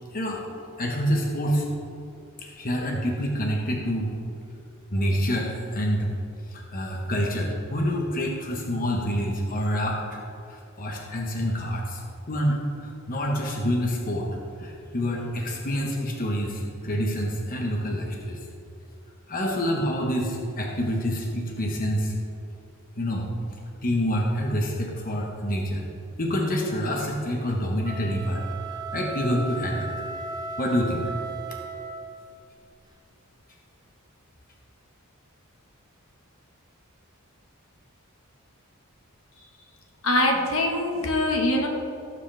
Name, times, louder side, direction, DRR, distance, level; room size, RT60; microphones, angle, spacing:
voice 1, 0.1-0.4 0.8-1.6 2.4-4.1 4.9-6.1 6.5-10.2 10.5-12.0 12.3-14.3 14.6-18.4 19.3-22.1 23.0-23.3 23.8-25.9 26.2-28.4 28.7-29.9 30.6-31.1, equal, 40° left, -1 dB, 1.3 m, -27 dB
sound 1, 27.8-32.3, right 4 dB, 20° right, 0.7 m, -36 dB
voice 2, 40.0-41.7, left 1 dB, 70° left, 1 dB, 1.5 m, -23 dB
17.5 x 8.3 x 3.5 m, 2.6 s
head